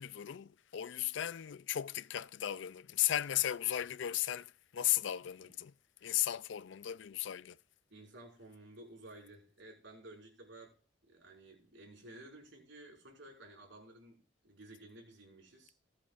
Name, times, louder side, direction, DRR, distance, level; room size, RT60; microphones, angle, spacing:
voice 1, 0.0-5.7 6.0-7.6, left 12 dB, 65° left, 0.4 m, -35 dB
voice 2, 7.9-10.7 11.0-15.7, right 1 dB, 60° right, 5.7 m, -54 dB
19.5 x 8.5 x 2.5 m
head